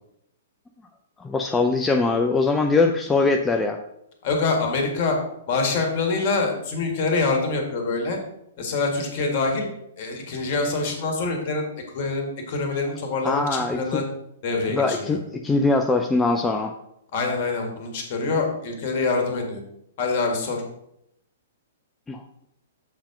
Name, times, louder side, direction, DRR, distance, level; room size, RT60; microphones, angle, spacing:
voice 1, 1.2-3.8 13.2-14.0 14.7-16.7 22.1-22.2, left 3 dB, 10° left, 3 dB, 0.5 m, -22 dB
voice 2, 4.2-5.2 5.5-8.2 8.6-9.7 10.0-11.7 11.9-14.0 14.4-15.2 17.1-19.6 20.0-20.6, left 3 dB, 45° left, 2 dB, 2.0 m, -25 dB
7.4 x 4.4 x 5.2 m, 0.79 s
figure-of-eight pair, 115°, 0 cm